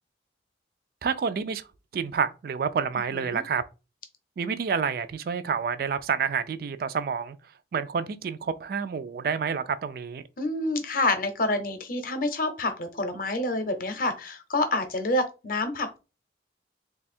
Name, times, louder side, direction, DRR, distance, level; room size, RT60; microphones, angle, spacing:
voice 1, 1.0-1.6 1.9-3.6 4.4-7.4 7.7-10.2, right 6 dB, 55° right, 0.3 m, -28 dB
voice 2, 3.1-3.4 10.4-16.0, left 2 dB, 50° left, 0.7 m, -28 dB
3.3 x 2.3 x 4.2 m
head